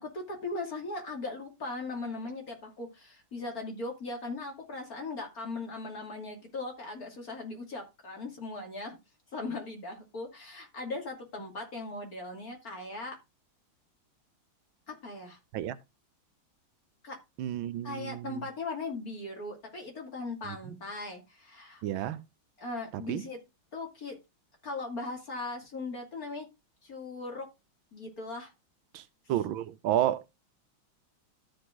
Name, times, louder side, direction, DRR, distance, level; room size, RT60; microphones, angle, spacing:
voice 1, 0.0-9.0 9.3-13.2 14.9-15.4 17.0-17.2 17.8-21.8 22.6-23.4 23.7-24.2 24.6-26.5 26.8-27.5 27.9-28.5, left 3 dB, 45° left, 3.1 m, -39 dB
voice 2, 17.4-18.4 20.4-20.8 21.8-22.2 22.9-23.2 28.9-29.0 29.3-30.3, right 12 dB, 85° right, 1.5 m, -31 dB
13.5 x 5.3 x 3.8 m
omnidirectional pair, 2.2 m